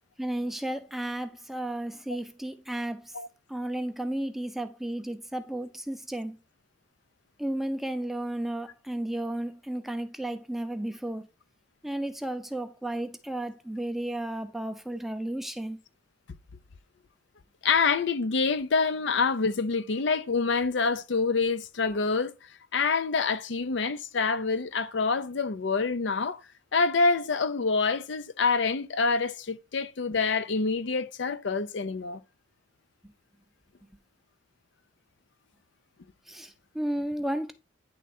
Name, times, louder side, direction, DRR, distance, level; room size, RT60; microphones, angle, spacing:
voice 1, 0.2-3.1 3.5-6.4 7.4-11.3 11.8-15.8 36.3-37.5, right 1 dB, ahead, 0.6 m, -33 dB
voice 2, 17.6-22.3 22.7-26.4 26.7-32.2, left 4 dB, 60° left, 0.5 m, -26 dB
9.6 x 3.6 x 4.2 m
head